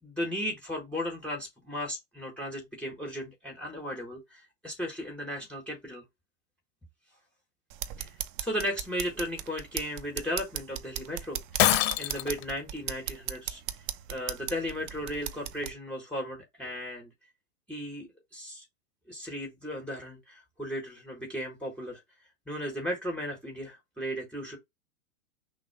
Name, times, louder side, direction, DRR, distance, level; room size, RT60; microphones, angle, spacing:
voice 1, 0.0-6.0 8.0-13.6 14.1-17.1 17.7-18.6 19.1-22.0 22.5-24.6, equal, 5° left, 1.7 m, -36 dB
sound 1, 7.7-15.7, right 11 dB, 35° right, 0.6 m, -38 dB
Shatter, 11.6-12.4, left 14 dB, 50° left, 0.7 m, -24 dB
5.9 x 2.1 x 3.5 m
hypercardioid pair, 115°, 40 cm